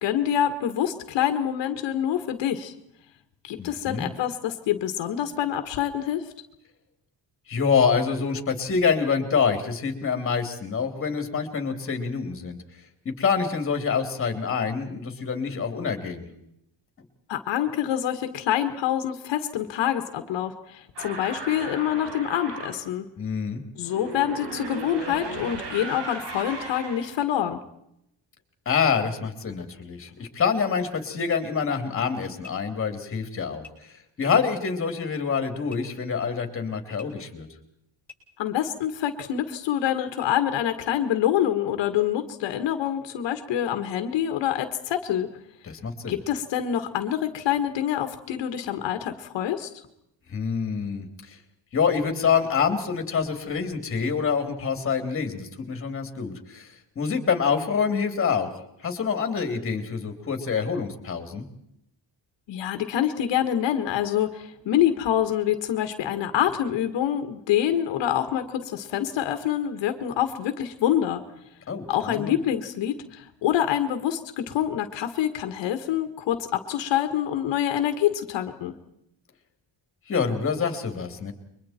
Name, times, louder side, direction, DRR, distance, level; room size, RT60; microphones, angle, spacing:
voice 1, 0.0-2.7 3.4-6.2 17.3-23.0 23.8-27.6 38.4-45.3 46.1-49.7 62.5-71.2 71.9-78.7, left 10 dB, 75° left, 8 dB, 1.8 m, -26 dB
voice 2, 3.6-4.1 7.5-12.6 13.2-16.3 23.2-23.6 28.6-33.6 34.2-37.5 45.6-46.2 50.3-51.4 51.7-58.5 58.8-61.4 71.7-72.4 80.1-81.3, left 6 dB, 30° left, 6 dB, 3.2 m, -26 dB
sound 1, 21.0-22.8 23.8-27.2, right 2 dB, 70° right, 5.0 m, -36 dB
sound 2, 32.4-32.5 33.6-33.7 34.6-34.7 35.6-36.1 36.9-37.1 38.0-38.2 39.2-39.3 40.2-40.3, left 4 dB, 5° left, 7.0 m, -46 dB
30.0 x 23.5 x 4.4 m, 0.78 s
cardioid pair, 170°, 43 cm